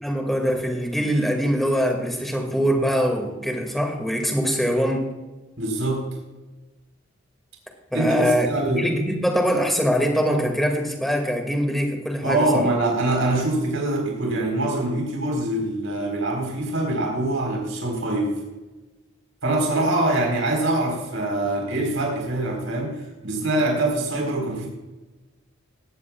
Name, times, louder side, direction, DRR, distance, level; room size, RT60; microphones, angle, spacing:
voice 1, 0.0-5.1 7.9-12.7, equal, ahead, 2 dB, 2.1 m, -23 dB
voice 2, 5.6-6.0 7.9-8.9 12.2-18.4 19.4-24.7, right 2 dB, 70° right, 0 dB, 4.2 m, -24 dB
19.0 x 14.5 x 2.4 m, 1.1 s
head